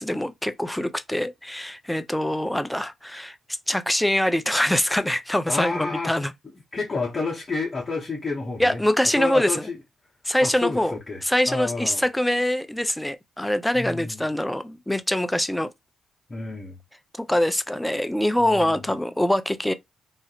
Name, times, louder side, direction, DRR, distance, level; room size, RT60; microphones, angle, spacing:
voice 1, 0.0-3.4 3.7-6.3 8.6-9.7 10.3-15.7 17.2-19.7, left 1 dB, 5° left, 0.4 m, -24 dB
voice 2, 5.5-6.1 6.7-8.8 9.1-9.8 10.4-11.2 11.5-12.0 13.7-14.2 16.3-16.8 18.4-18.9, left 3 dB, 35° left, 0.8 m, -30 dB
2.4 x 2.0 x 2.8 m
hypercardioid pair, 45°, 0 cm